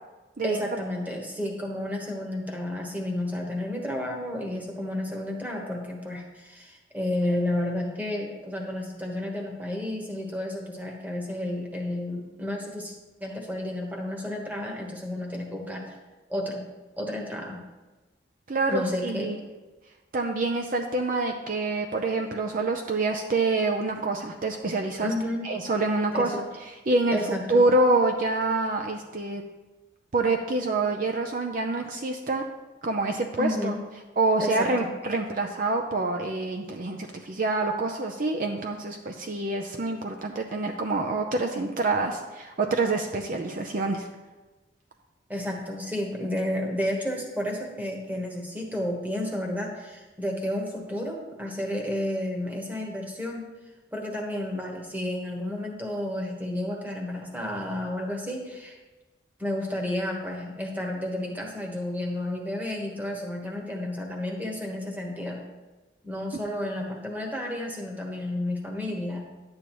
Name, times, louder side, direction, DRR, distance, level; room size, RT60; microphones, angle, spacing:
voice 1, 0.4-16.0 16.3-16.7 17.0-17.7 18.7-19.4 25.0-25.5 26.1-26.4 27.1-27.7 33.4-33.8 34.4-34.9 45.3-53.5 53.9-58.8 59.4-65.5 66.0-69.3, left 1 dB, 10° right, 0 dB, 1.2 m, -31 dB
voice 2, 18.5-19.4 20.1-25.1 25.4-26.3 26.9-27.2 27.5-29.4 30.1-32.4 32.8-33.7 34.2-44.1, right 2 dB, 45° right, 4 dB, 0.5 m, -26 dB
11.0 x 8.6 x 3.1 m, 1.2 s
head